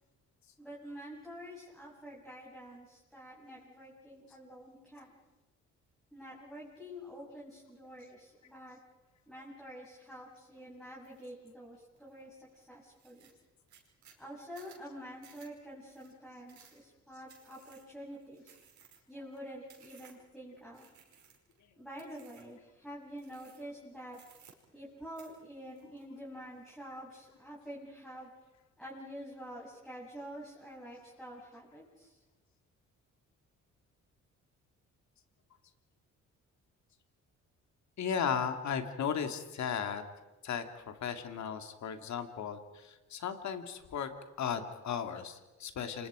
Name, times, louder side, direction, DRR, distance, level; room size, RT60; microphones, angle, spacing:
voice 1, 0.6-5.2 6.1-8.8 9.3-13.3 14.2-18.6 19.1-20.9 21.8-24.2 24.7-28.3 28.8-32.2, equal, ahead, -6 dB, 7.2 m, -48 dB
sound 1, 11.0-11.3 11.7-12.2 12.6-12.7 12.9-20.3 20.7-21.6 22.0-22.6 23.2-23.8 24.1-24.9 25.2-26.3 26.7-27.2, right 7 dB, 70° right, 5.3 m, -60 dB
voice 2, 38.0-40.0 40.4-44.1 44.4-46.1, left 7 dB, 65° left, 7 dB, 2.6 m, -36 dB
28.5 x 25.0 x 5.1 m, 1.1 s
cardioid pair, 90°, 30 cm